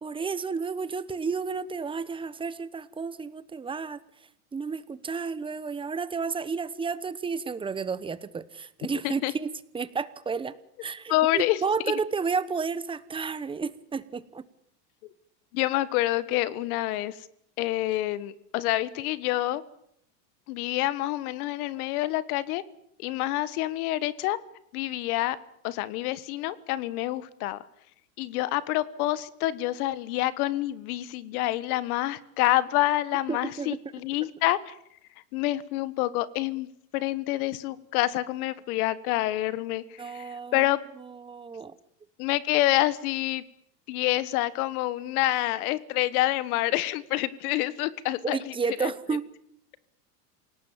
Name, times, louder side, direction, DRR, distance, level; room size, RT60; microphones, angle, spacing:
voice 1, 0.0-4.0 4.5-14.4 33.3-33.8 40.0-40.7 41.0-41.8 48.2-49.3, right 5 dB, 10° right, 16 dB, 0.9 m, -32 dB
voice 2, 11.1-11.6 15.5-17.2 17.6-19.6 20.5-22.6 23.0-24.4 24.7-25.4 25.6-27.6 28.2-34.7 35.3-36.7 36.9-40.8 42.2-43.4 43.9-48.5 48.8-48.9, left 16 dB, 60° left, 17 dB, 1.4 m, -27 dB
28.0 x 18.5 x 7.2 m, 0.71 s
supercardioid pair, 140°, 48 cm